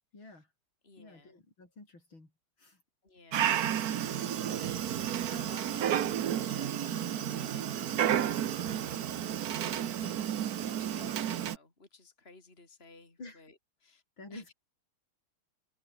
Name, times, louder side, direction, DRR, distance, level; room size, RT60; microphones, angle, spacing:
voice 1, 0.1-0.5 1.0-2.3 2.6-2.8 13.2-13.4 14.2-14.5, left 2 dB, 65° left, 7.5 m, -50 dB
voice 2, 0.8-1.3 3.0-9.0 9.7-14.0 14.3-14.5, left 3 dB, 25° left, 4.6 m, -55 dB
Dog, 3.3-11.6, right 10 dB, 55° right, 1.2 m, -31 dB
omnidirectional pair, 2.3 m